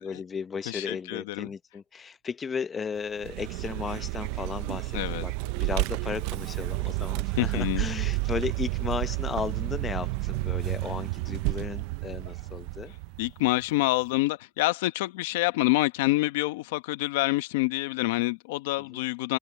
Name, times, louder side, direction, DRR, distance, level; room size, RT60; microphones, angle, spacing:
voice 1, 0.0-12.9 18.8-19.0, left 6 dB, 25° left, 0.8 m, -35 dB
voice 2, 0.7-1.5 4.9-5.3 7.4-7.9 13.2-19.4, left 19 dB, 90° left, 1.0 m, -27 dB
sound 1, 2.9-14.2, right 15 dB, 55° right, 5.4 m, -52 dB
Vehicle, 3.2-13.5, right 23 dB, 75° right, 0.5 m, -31 dB
open air
supercardioid pair, 130°, 0 cm